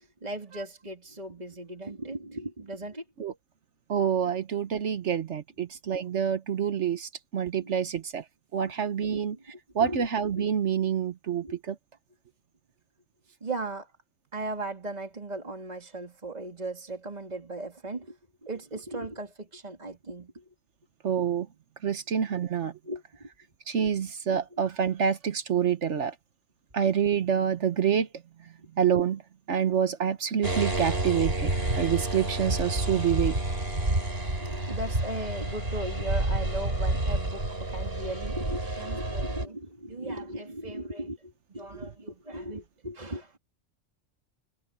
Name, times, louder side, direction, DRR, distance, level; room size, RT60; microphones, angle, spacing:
voice 1, 0.0-3.0 7.6-7.8 9.0-9.3 9.8-10.1 10.3-10.5 11.4-11.6 13.4-13.9 14.3-20.4 22.8-23.3 24.5-24.6 34.4-43.4, right 1 dB, 35° right, 3.1 m, -37 dB
voice 2, 3.9-8.2 8.5-9.4 9.7-11.7 21.0-21.5 21.8-22.7 23.7-26.1 26.7-28.1 28.8-29.2 29.5-33.4, right 8 dB, 70° right, 1.3 m, -27 dB
sound 1, 30.4-39.5, right 2 dB, 50° right, 4.4 m, -29 dB
omnidirectional pair, 1.3 m